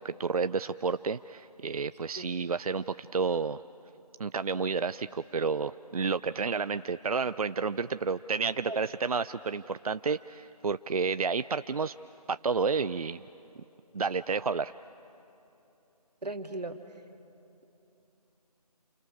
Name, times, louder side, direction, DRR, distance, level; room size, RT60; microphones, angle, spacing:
voice 1, 0.0-3.6 4.2-11.9 12.3-13.2 13.9-14.7, right 5 dB, 65° right, 13 dB, 0.5 m, -30 dB
voice 2, 16.2-16.8, right 2 dB, 85° right, 5 dB, 2.1 m, -36 dB
29.0 x 25.0 x 6.4 m, 2.9 s
figure-of-eight pair, 175°, 20 cm